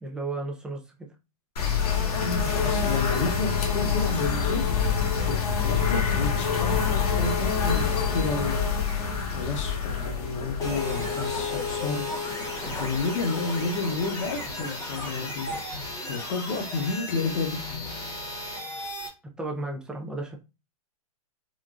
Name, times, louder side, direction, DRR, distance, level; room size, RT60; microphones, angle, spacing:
voice 1, 0.0-0.8 19.4-20.4, right 2 dB, 5° right, 0.3 m, -33 dB
sound 1, 1.6-12.2, left 6 dB, 85° left, 1.0 m, -26 dB
voice 2, 2.2-4.7 5.3-5.4 5.6-6.7 7.0-8.6 9.3-17.9, left 4 dB, 55° left, 0.8 m, -31 dB
sound 2, 10.6-19.1, left 2 dB, 15° left, 0.9 m, -33 dB
3.8 x 2.3 x 2.3 m
hypercardioid pair, 145°, 19 cm